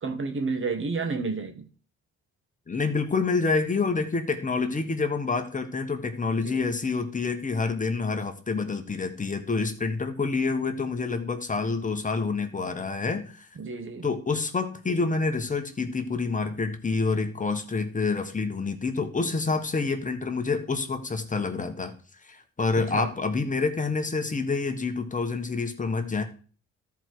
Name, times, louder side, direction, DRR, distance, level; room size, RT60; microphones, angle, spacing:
voice 1, 0.0-1.7 6.4-6.6 13.6-14.1 22.7-23.1, right 4 dB, 40° right, 1.5 m, -31 dB
voice 2, 2.7-13.5 14.0-21.9 22.2-26.2, left 4 dB, 25° left, 1.4 m, -27 dB
13.5 x 4.7 x 4.7 m
cardioid pair, 90°, 30 cm